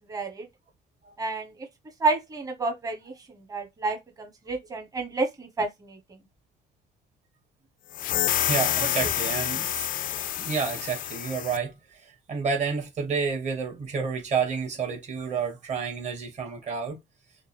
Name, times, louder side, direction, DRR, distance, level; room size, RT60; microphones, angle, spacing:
voice 1, 0.1-0.5 1.2-1.7 2.0-6.0 8.8-9.1, right 3 dB, 20° right, 1.2 m, -30 dB
sound 1, 7.9-11.6, left 12 dB, 55° left, 0.4 m, -28 dB
voice 2, 8.5-9.9 10.4-17.0, right 5 dB, 45° right, 1.9 m, -30 dB
6.4 x 2.3 x 3.4 m
cardioid pair, 110°, 17 cm